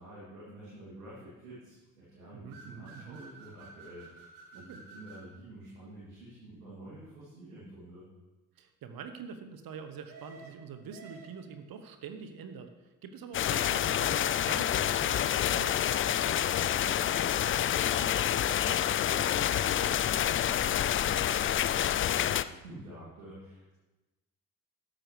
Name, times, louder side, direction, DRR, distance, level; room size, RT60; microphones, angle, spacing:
voice 1, 0.0-8.0 16.1-23.7, right 1 dB, 85° right, -9 dB, 3.0 m, -49 dB
voice 2, 2.3-3.2 4.5-4.8 8.6-12.7 13.0-15.8, right 6 dB, 55° right, 8 dB, 1.2 m, -45 dB
sound 1, 2.5-5.3 10.1-11.6 15.5-17.4, right 3 dB, 70° right, 2.2 m, -52 dB
sound 2, 13.3-22.4, left 11 dB, 30° left, 0.4 m, -28 dB
13.5 x 12.0 x 3.3 m, 1.1 s
figure-of-eight pair, 45°, 43 cm